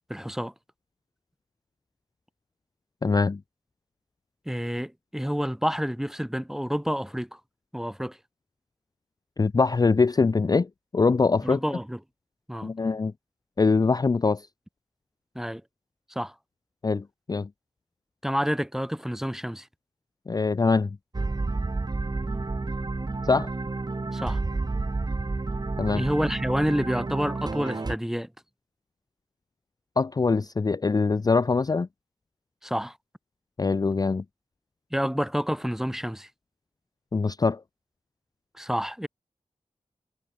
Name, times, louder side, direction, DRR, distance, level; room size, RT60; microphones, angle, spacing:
voice 1, 0.1-0.5 4.5-7.4 7.7-8.2 11.4-12.0 12.5-12.7 15.3-15.6 16.1-16.3 18.2-19.7 24.1-24.4 25.9-28.3 32.6-33.0 34.9-36.3 38.5-39.1, equal, 5° right, 0.7 m, -29 dB
voice 2, 3.0-3.4 9.4-11.6 12.6-13.1 13.6-14.5 16.8-17.5 20.3-21.0 23.2-23.5 25.8-26.0 30.0-31.9 33.6-34.2 37.1-37.6, left 4 dB, 30° left, 0.4 m, -23 dB
sound 1, 21.1-28.0, right 3 dB, 35° right, 1.0 m, -30 dB
cardioid pair, 50°, 12 cm